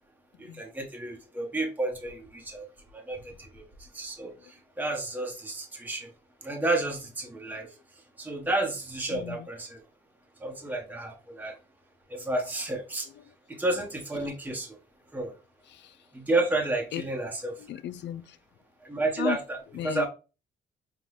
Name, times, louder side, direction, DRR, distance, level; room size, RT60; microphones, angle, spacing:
voice 1, 0.4-2.7 2.9-3.6 3.9-6.1 6.4-7.7 8.2-9.8 10.4-11.6 12.1-13.1 13.5-14.8 15.1-15.3 16.1-17.5 18.8-20.1, right 2 dB, 10° right, 0.9 m, -31 dB
voice 2, 9.1-9.5 10.5-10.7 13.1-13.6 14.2-14.3 15.7-16.0 16.9-17.0 17.6-18.4 19.2-19.4 19.7-20.1, left 11 dB, 65° left, 0.4 m, -36 dB
5.6 x 2.2 x 3.2 m
cardioid pair, 90°, 20 cm